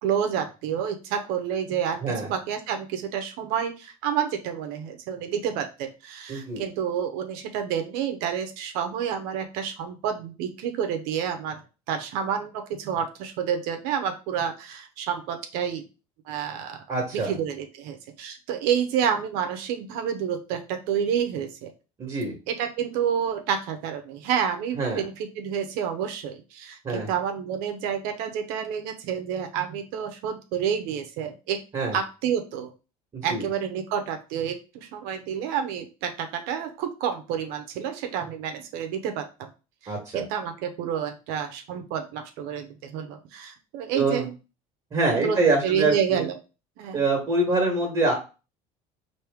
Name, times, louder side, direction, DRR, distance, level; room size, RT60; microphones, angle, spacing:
voice 1, 0.0-2.0 2.3-11.6 11.9-15.8 16.3-16.8 17.1-21.7 22.5-31.6 31.9-32.7 33.2-39.5 39.8-44.3 45.1-45.4 45.6-46.3 46.8-47.0, right 8 dB, 75° right, 6 dB, 0.9 m, -29 dB
voice 2, 6.3-6.6 16.9-17.3 22.0-22.3 24.7-25.0 26.8-27.1 31.7-32.0 33.1-33.4 39.9-40.2 43.9-44.2 44.9-46.2 46.9-48.1, right 3 dB, 25° right, -1 dB, 1.5 m, -25 dB
4.6 x 2.9 x 3.5 m, 0.31 s
cardioid pair, 145°, 16 cm